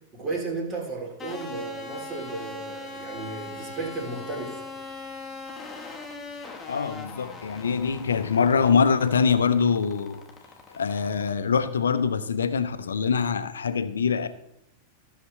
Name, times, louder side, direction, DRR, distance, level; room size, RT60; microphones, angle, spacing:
voice 1, 0.1-4.6, right 3 dB, 30° right, 2.9 m, -34 dB
sound 1, 1.2-11.3, left 3 dB, 15° left, 1.3 m, -41 dB
voice 2, 6.7-10.2 10.7-14.3, left 6 dB, 70° left, 0.6 m, -24 dB
15.5 x 5.8 x 3.2 m
figure-of-eight pair, 90°, 0 cm